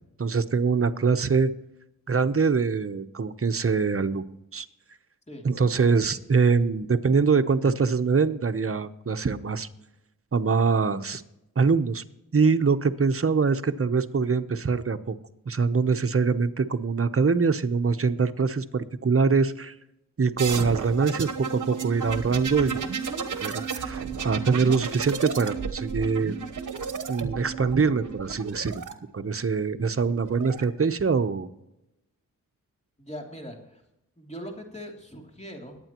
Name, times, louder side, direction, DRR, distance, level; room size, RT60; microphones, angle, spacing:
voice 1, 0.2-1.5 2.1-4.2 4.5-4.7 5.4-9.7 10.3-11.2 11.6-12.0 12.3-15.1 15.5-19.7 20.2-22.7 23.3-26.4 27.1-28.8 29.1-31.5, right 5 dB, 40° right, 9 dB, 0.9 m, -24 dB
sound 1, 20.4-28.9 30.0-30.6, right 6 dB, 60° right, 1.2 m, -33 dB
voice 2, 33.0-33.8 34.2-35.8, equal, 20° left, 1 dB, 2.9 m, -40 dB
21.0 x 9.0 x 3.0 m, 0.89 s
cardioid pair, 60°, 35 cm